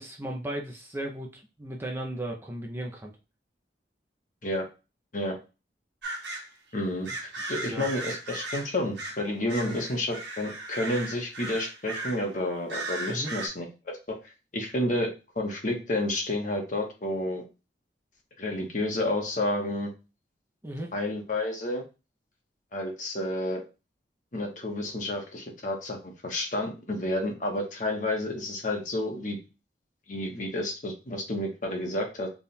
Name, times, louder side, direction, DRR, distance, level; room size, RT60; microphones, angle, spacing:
voice 1, 0.0-3.1 7.1-7.2 7.6-7.9 9.6-9.8 13.1-13.3 20.6-20.9, right 1 dB, 15° right, 0 dB, 0.6 m, -36 dB
sound 1, 6.0-6.5 7.0-9.2 9.5-12.3 12.7-13.5, right 2 dB, 75° right, 1.2 m, -36 dB
voice 2, 6.7-14.0 14.5-17.4 18.4-19.9 20.9-21.8 22.7-23.6 24.3-29.4 30.1-32.3, left 1 dB, 45° left, 2 dB, 1.1 m, -30 dB
3.5 x 2.4 x 4.2 m, 0.29 s
head